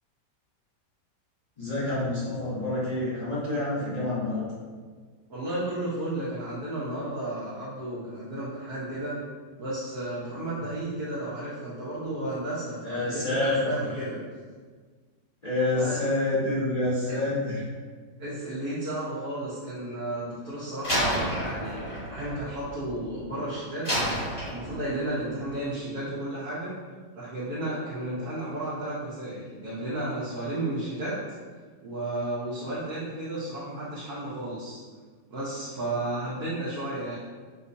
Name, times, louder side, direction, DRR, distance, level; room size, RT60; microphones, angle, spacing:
voice 1, 1.6-4.5 10.6-10.7 12.8-13.8 15.4-17.6, left 2 dB, 50° left, -9 dB, 0.5 m, -27 dB
voice 2, 5.3-9.2 9.6-14.2 15.7-16.0 17.1-17.2 18.2-24.1 24.5-26.7 27.2-31.2 31.8-34.8 35.3-37.1, right 1 dB, 65° right, -10 dB, 1.2 m, -33 dB
Slam, 20.8-23.3 23.8-25.1, equal, 20° left, 0.9 m, -30 dB
4.9 x 2.1 x 2.6 m, 1.5 s
omnidirectional pair, 1.9 m